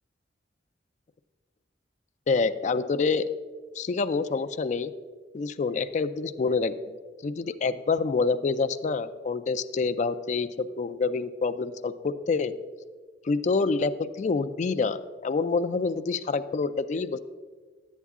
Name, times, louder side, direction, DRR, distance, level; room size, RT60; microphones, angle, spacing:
voice 1, 2.3-3.3 3.8-4.9 5.3-7.0 7.2-12.5 13.2-17.2, left 4 dB, 40° left, 11 dB, 0.3 m, -27 dB
10.0 x 8.3 x 3.6 m, 1.5 s
head